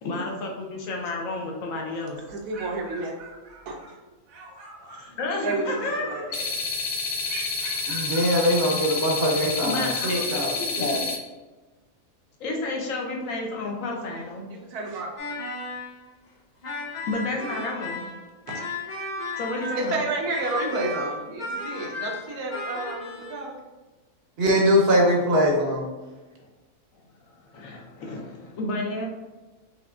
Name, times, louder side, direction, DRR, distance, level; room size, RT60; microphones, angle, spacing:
voice 1, 0.0-2.2 4.9-6.3 9.6-11.0 12.4-14.5 16.8-18.1 19.4-20.0 27.3-29.1, left 2 dB, 65° left, 0 dB, 1.2 m, -31 dB
sound 1, 2.3-3.9 4.3-5.1 5.4-6.7 7.2-8.3, right 3 dB, 70° right, 1.2 m, -41 dB
voice 2, 2.3-3.1 3.7-3.8 5.4-6.5 14.5-15.1 18.5-18.6 19.8-23.5, right 2 dB, 85° right, 0 dB, 1.3 m, -30 dB
sound 2, 6.3-11.2, left 4 dB, 85° left, 1.4 m, -29 dB
voice 3, 7.9-10.9 24.4-25.9, equal, 50° right, -2 dB, 0.9 m, -22 dB
sound 3, 15.2-16.0 16.6-20.0 20.3-23.4, left 2 dB, 40° left, 0.6 m, -34 dB
5.1 x 3.3 x 2.4 m, 1.2 s
omnidirectional pair, 1.6 m